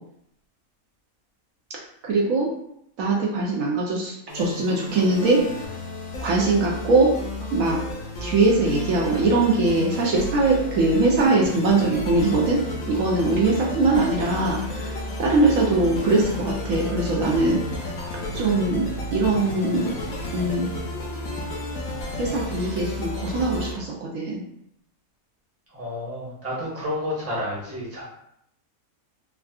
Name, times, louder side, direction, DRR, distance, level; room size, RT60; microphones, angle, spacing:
voice 1, 2.0-2.5 3.0-5.7 6.2-7.1 7.5-7.8 8.2-12.6 12.9-17.6 18.3-19.9 20.3-20.7 22.2-24.4, right 2 dB, 70° right, -2 dB, 1.0 m, -21 dB
sound 1, 4.3-23.7, left 1 dB, 70° left, 1.1 m, -32 dB
voice 2, 25.7-28.0, left 1 dB, 10° right, -7 dB, 0.8 m, -30 dB
3.5 x 2.3 x 2.3 m, 0.75 s
omnidirectional pair, 1.5 m